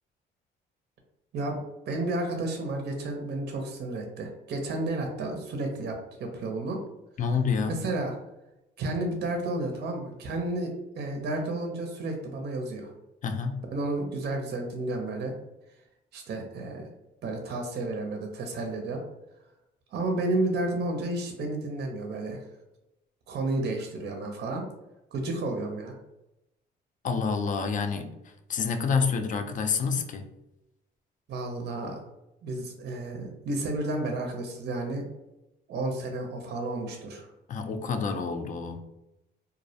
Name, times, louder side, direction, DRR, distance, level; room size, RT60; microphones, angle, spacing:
voice 1, 1.3-6.8 7.7-8.1 8.8-10.7 11.0-12.9 13.7-15.3 16.1-16.9 17.2-19.0 19.9-22.4 23.3-24.6 25.1-25.9 31.3-32.0 32.4-35.0 35.7-37.3, right 2 dB, 55° right, 0.5 m, -31 dB
voice 2, 7.2-7.8 13.2-13.6 27.0-30.3 37.5-38.8, left 5 dB, 40° left, 0.4 m, -28 dB
2.3 x 2.0 x 2.6 m
cardioid pair, 90°, 20 cm